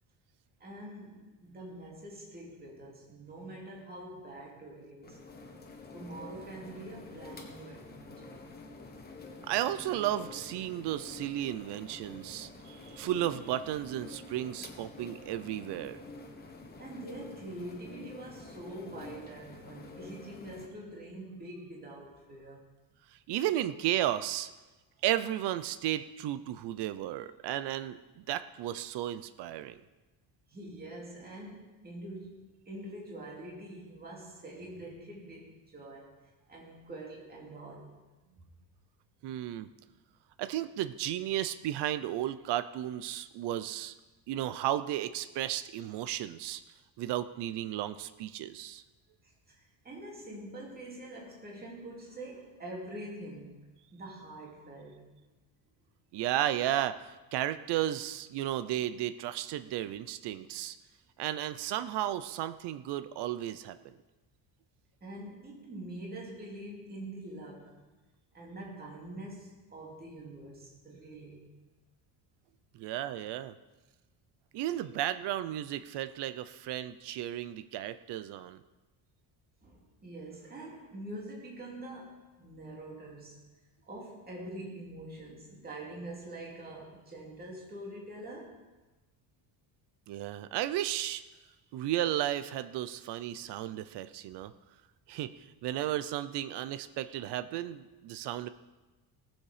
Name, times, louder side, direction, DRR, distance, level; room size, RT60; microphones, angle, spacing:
voice 1, 0.6-5.2 5.9-8.4 16.8-22.7 30.5-37.9 49.2-53.6 53.9-55.1 65.0-67.8 68.3-71.5 79.6-83.4 83.9-88.6, right 1 dB, 20° right, -3 dB, 2.6 m, -45 dB
sound 1, 5.0-20.7, left 3 dB, 20° left, 1.5 m, -48 dB
voice 2, 9.4-16.0 23.3-24.5 25.0-29.8 39.2-39.7 40.4-43.9 44.3-46.6 47.0-48.8 56.1-60.8 61.2-63.9 72.7-73.5 74.5-78.6 90.1-91.2 91.7-94.5 95.1-95.3 95.6-98.5, right 13 dB, 65° right, 13 dB, 0.7 m, -34 dB
18.5 x 7.4 x 5.0 m, 1.1 s
cardioid pair, 145°, 44 cm